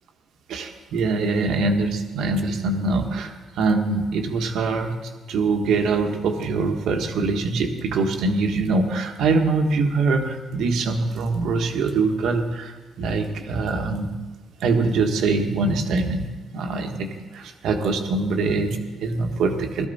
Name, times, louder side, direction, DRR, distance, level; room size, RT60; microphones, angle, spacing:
voice 1, 0.5-4.9 5.3-14.2 14.6-17.1 17.3-19.9, right 3 dB, 80° right, 4 dB, 1.5 m, -23 dB
17.5 x 13.0 x 4.2 m, 1.2 s
cardioid pair, 90°, 0 cm